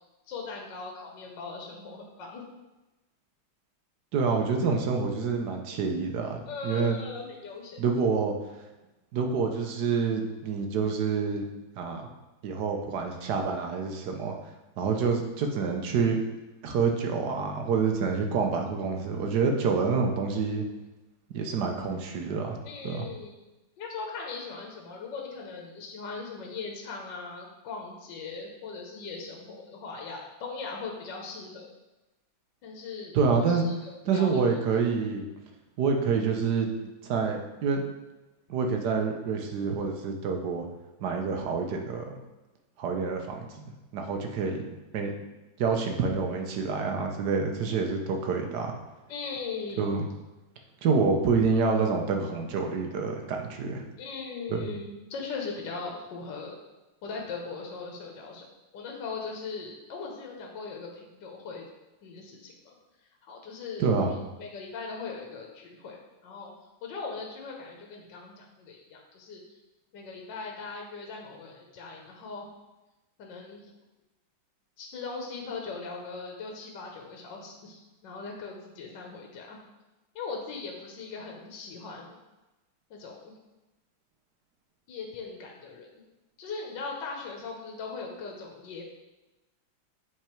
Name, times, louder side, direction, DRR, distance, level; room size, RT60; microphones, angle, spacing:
voice 1, 0.3-2.4 6.5-7.8 22.6-23.4 23.8-31.7 32.6-33.1 33.5-34.4 49.1-50.0 54.0-56.6 57.0-58.5 58.7-61.6 62.0-62.8 63.2-66.5 66.8-69.4 69.9-72.5 73.2-73.7 74.8-79.6 80.1-82.2 82.9-83.3 84.9-85.9 86.4-88.8, left 4 dB, 65° left, 0 dB, 1.5 m, -39 dB
voice 2, 4.1-7.0 7.8-8.3 9.1-11.4 11.8-12.0 12.4-14.4 14.8-16.2 16.6-20.7 21.3-22.6 22.8-23.1 33.1-33.7 34.1-35.2 35.8-36.7 37.0-37.9 38.5-40.7 41.0-42.2 42.8-43.4 43.9-44.6 44.9-45.1 45.6-48.8 49.8-50.1 50.8-53.8 54.5-54.7 63.8-64.1, right 5 dB, 65° right, 3 dB, 1.2 m, -27 dB
7.9 x 3.6 x 4.5 m, 1.1 s
omnidirectional pair, 2.3 m